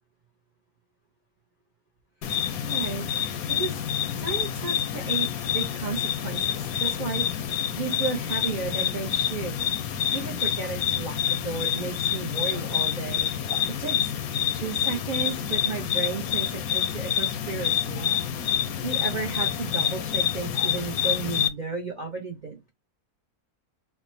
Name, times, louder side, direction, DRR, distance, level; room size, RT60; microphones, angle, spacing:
sound 1, 2.2-21.5, left 9 dB, 80° left, 1.0 m, -27 dB
voice 1, 2.6-3.8 4.2-14.1 14.5-18.1 18.5-22.7, right 5 dB, 55° right, 1 dB, 0.5 m, -34 dB
3.3 x 2.0 x 4.1 m, 0.21 s
omnidirectional pair, 1.6 m